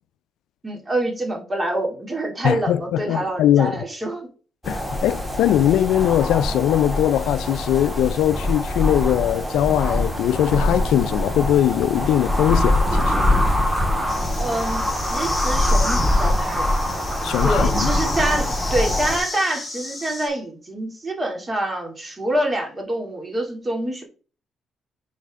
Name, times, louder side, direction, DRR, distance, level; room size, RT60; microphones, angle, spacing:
voice 1, 0.6-4.3 14.4-16.8 17.4-24.0, right 1 dB, 25° right, 2.5 m, -26 dB
voice 2, 2.4-3.8 4.7-13.2 17.2-17.9, left 11 dB, 85° left, 0.4 m, -20 dB
sound 1, 4.6-19.2, left 1 dB, ahead, 2.4 m, -23 dB
sound 2, 14.1-20.3, left 3 dB, 40° left, 3.3 m, -33 dB
9.4 x 4.2 x 3.6 m
cardioid pair, 90°, 0 cm